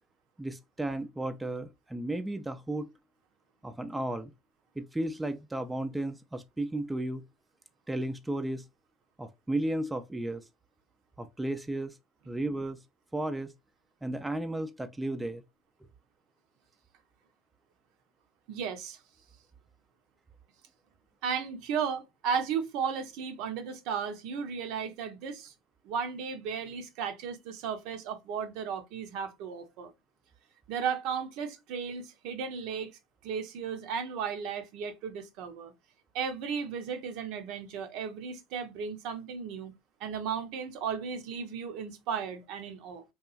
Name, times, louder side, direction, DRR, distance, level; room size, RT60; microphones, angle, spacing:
voice 1, 0.4-2.9 3.6-4.3 4.8-7.2 7.9-8.6 9.2-10.5 11.2-12.0 12.3-12.8 13.1-13.5 14.0-15.4, right 1 dB, 10° right, 0.3 m, -34 dB
voice 2, 18.5-19.0 21.2-25.5 25.8-29.9 30.7-32.9 33.2-35.7 36.1-39.7 40.0-43.0, right 6 dB, 65° right, 0.6 m, -35 dB
2.8 x 2.3 x 2.3 m
hypercardioid pair, 85°, 0 cm